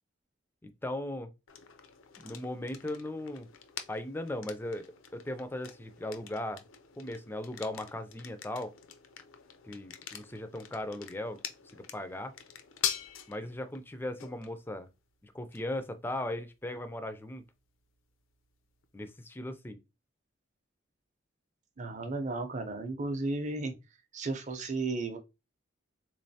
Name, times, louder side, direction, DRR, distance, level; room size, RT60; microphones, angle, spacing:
voice 1, 0.6-1.3 2.2-3.5 3.9-4.9 5.1-6.6 7.0-8.7 9.6-11.4 11.7-12.3 13.3-14.9 15.2-17.4 18.9-19.8, left 1 dB, 10° left, 0.3 m, -38 dB
sound 1, 1.5-19.2, left 9 dB, 85° left, 0.5 m, -45 dB
voice 2, 21.8-23.7 24.1-25.2, right 3 dB, 35° right, 0.6 m, -34 dB
3.7 x 3.1 x 2.7 m
head